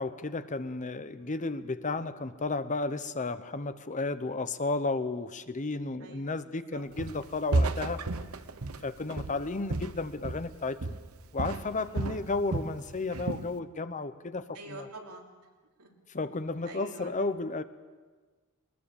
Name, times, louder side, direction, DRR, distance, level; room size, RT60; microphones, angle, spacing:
voice 1, 0.0-8.0 8.8-11.0 11.3-14.9 16.1-17.6, left 3 dB, 35° left, 12 dB, 0.8 m, -33 dB
voice 2, 6.0-6.3 6.7-6.8 11.8-12.2 14.5-15.3 15.8-15.9 16.6-17.1, right 2 dB, 85° right, 0 dB, 3.3 m, -46 dB
Walk footsteps, 7.0-7.3 7.5-10.6 10.8-11.1 11.4-12.8 13.1-13.5, right 2 dB, 70° right, 0.9 m, -32 dB
21.0 x 20.0 x 7.2 m, 1.4 s
head